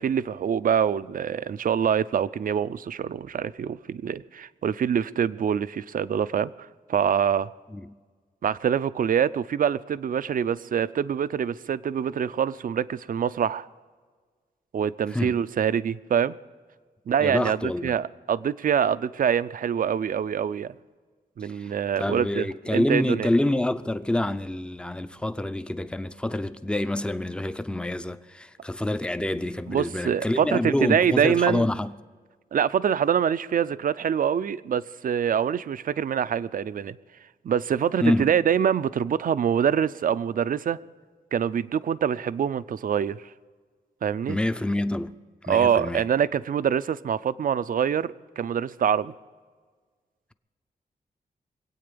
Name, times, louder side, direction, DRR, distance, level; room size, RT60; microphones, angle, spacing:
voice 1, 0.0-7.5 8.4-13.7 14.7-16.4 17.1-20.7 21.4-22.5 22.7-23.3 29.7-31.7 32.5-37.0 37.4-40.8 41.3-43.2 44.0-44.4 45.5-49.1, right 8 dB, 60° right, 0.5 m, -25 dB
voice 2, 17.2-18.0 21.4-31.9 38.0-38.3 44.3-45.2 45.4-46.0, left 1 dB, 5° left, 0.5 m, -27 dB
24.0 x 8.8 x 6.9 m
wide cardioid pair, 130°, 16 cm